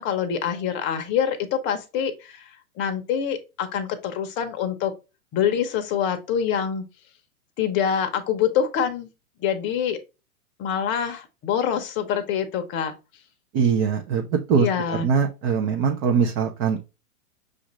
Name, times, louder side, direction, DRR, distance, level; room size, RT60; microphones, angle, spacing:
voice 1, 0.0-4.9 5.3-6.8 7.6-9.1 9.4-10.0 10.6-12.9 14.5-15.1, left 8 dB, 25° left, 0.8 m, -25 dB
voice 2, 13.5-16.8, right 6 dB, 25° right, 0.5 m, -22 dB
6.3 x 2.5 x 3.0 m
hypercardioid pair, 130°, 45 cm